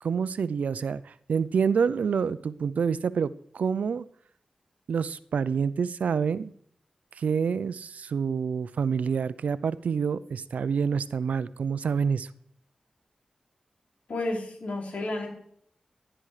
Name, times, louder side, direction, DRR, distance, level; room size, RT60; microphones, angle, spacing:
voice 1, 0.0-4.1 4.9-6.5 7.2-12.3, right 6 dB, 90° right, 0.6 m, -27 dB
voice 2, 14.1-15.3, left 2 dB, 70° left, 4.6 m, -31 dB
16.0 x 11.0 x 5.0 m
cardioid pair, 60°, 2 cm